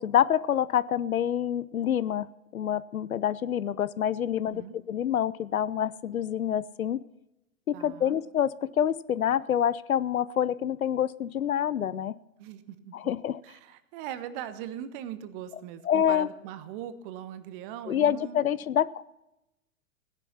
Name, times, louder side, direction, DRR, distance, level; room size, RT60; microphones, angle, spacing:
voice 1, 0.0-2.3 2.5-7.0 7.7-12.1 12.9-13.4 15.9-16.3 17.9-19.0, left 9 dB, 80° left, 19 dB, 0.6 m, -27 dB
voice 2, 7.7-8.2 12.4-13.0 13.4-18.5, right 10 dB, 40° right, 12 dB, 1.2 m, -40 dB
16.5 x 10.5 x 5.9 m, 0.93 s
figure-of-eight pair, 105°, 42 cm